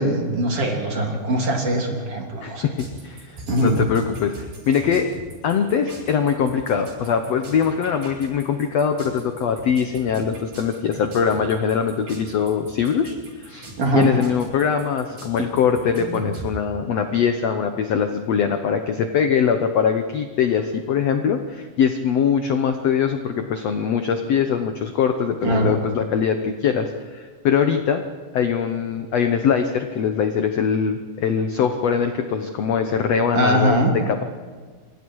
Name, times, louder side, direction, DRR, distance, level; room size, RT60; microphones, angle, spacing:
voice 1, 0.0-2.7 3.5-3.8 13.8-14.1 25.4-25.8 33.4-33.9, right 1 dB, 40° right, 1 dB, 3.9 m, -21 dB
voice 2, 2.4-2.8 3.0-4.3 4.7-5.1 5.4-28.0 28.3-33.8 34.1-34.2, left 7 dB, 75° left, 7 dB, 1.5 m, -22 dB
sound 1, 2.8-16.5, right 2 dB, 75° right, 9.8 m, -39 dB
28.0 x 25.0 x 4.8 m, 1.5 s
omnidirectional pair, 4.5 m